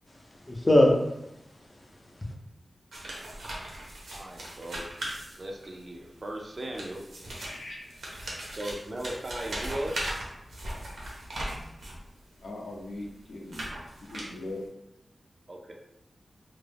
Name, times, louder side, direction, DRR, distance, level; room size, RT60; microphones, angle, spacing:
voice 1, 0.1-2.3, left 1 dB, 20° left, 0.5 m, -25 dB
sound 1, 2.9-5.8 6.5-12.1 12.7-14.6, right 1 dB, 90° right, 0.6 m, -38 dB
voice 2, 4.1-4.8 5.4-7.0 8.6-9.9 15.5-15.7, right 1 dB, 40° right, 0.3 m, -37 dB
voice 3, 7.3-7.9 12.4-13.6 14.0-14.6, left 2 dB, 70° left, 0.5 m, -40 dB
2.3 x 2.0 x 3.2 m
wide cardioid pair, 120°, 0 cm